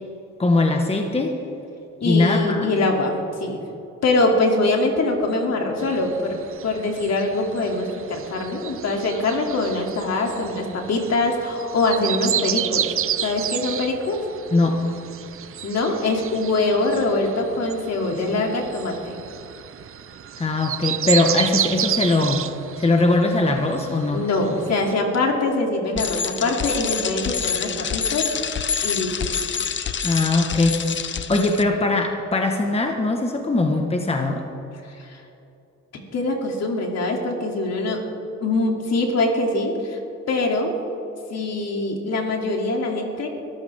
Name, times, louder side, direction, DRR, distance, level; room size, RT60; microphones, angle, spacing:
voice 1, 0.4-1.4 2.0-2.7 14.5-14.8 20.4-22.5 22.8-24.3 30.0-30.8 31.3-34.4, left 2 dB, 20° left, 3 dB, 1.4 m, -20 dB
voice 2, 2.0-3.6 4.0-6.4 6.6-12.9 13.2-14.2 15.6-19.2 24.1-28.3 28.8-29.4 34.9-35.2 36.1-38.0 38.4-40.0 40.3-40.7 41.3-43.3, left 2 dB, 60° left, 1 dB, 2.9 m, -23 dB
sound 1, 5.8-24.9, right 10 dB, 45° right, 0.6 m, -31 dB
Bicycle, 26.0-31.6, left 7 dB, 40° left, 0.8 m, -27 dB
22.0 x 14.0 x 3.6 m, 2.9 s
cardioid pair, 90°, 30 cm